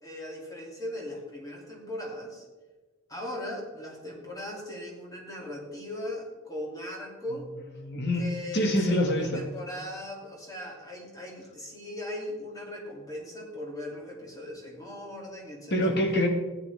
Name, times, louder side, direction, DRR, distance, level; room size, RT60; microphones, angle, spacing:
voice 1, 0.0-2.4 3.1-7.5 8.2-16.0, left 1 dB, 15° left, -3 dB, 2.8 m, -39 dB
voice 2, 7.8-8.2 8.5-9.3 15.7-16.3, left 1 dB, 50° left, 3 dB, 1.8 m, -25 dB
15.0 x 9.2 x 3.5 m, 1.2 s
head